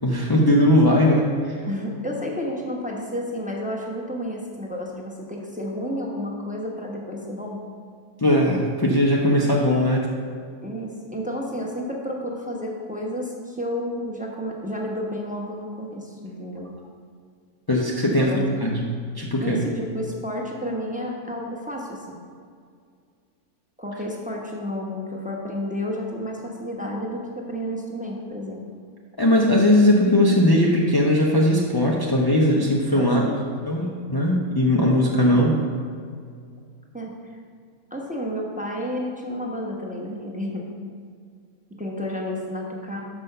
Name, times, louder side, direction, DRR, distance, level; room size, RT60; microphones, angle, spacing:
voice 1, 0.0-1.3 8.2-10.1 17.7-19.7 29.2-33.3 33.7-35.6, left 1 dB, 35° left, -3 dB, 0.3 m, -19 dB
voice 2, 1.7-7.6 10.6-16.7 18.0-18.5 19.4-22.2 23.8-28.6 32.9-33.4 36.9-37.1 37.9-40.7 41.8-43.0, equal, 5° right, -2 dB, 0.7 m, -31 dB
6.0 x 5.3 x 6.6 m, 2.2 s
omnidirectional pair, 1.6 m